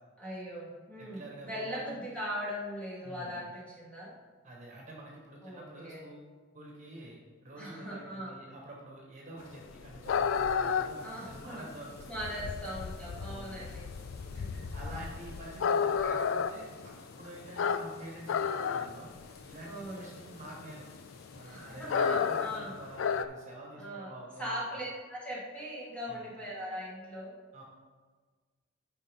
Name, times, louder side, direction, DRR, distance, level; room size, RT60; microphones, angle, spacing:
voice 1, 0.2-4.1 5.4-6.0 7.6-8.4 11.0-11.7 12.1-13.8 14.2-14.5 19.6-20.1 21.4-22.7 23.8-24.1 24.4-27.3, equal, 5° left, -7 dB, 2.1 m, -40 dB
voice 2, 1.0-2.0 3.0-3.4 4.4-6.3 6.5-12.0 12.4-12.5 13.2-13.6 14.3-19.1 19.4-20.9 21.3-24.6 26.1-26.3 27.5-27.6, right 1 dB, 40° right, -2 dB, 1.5 m, -48 dB
sound 1, 9.5-23.3, left 6 dB, 70° left, 0.4 m, -32 dB
sound 2, 10.0-22.6, left 3 dB, 55° left, 1.0 m, -57 dB
9.5 x 5.4 x 3.7 m, 1.4 s
head